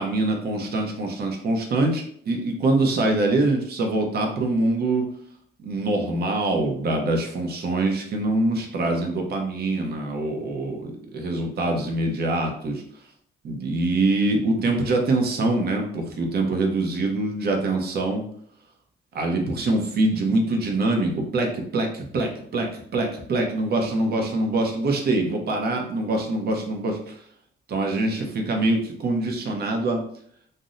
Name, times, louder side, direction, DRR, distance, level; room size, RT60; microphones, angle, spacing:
voice 1, 0.0-5.1 5.6-12.8 13.4-18.2 19.1-27.2 27.7-30.0, right 2 dB, 55° right, 2 dB, 0.7 m, -24 dB
2.6 x 2.1 x 3.7 m, 0.64 s
cardioid pair, 90°, 20 cm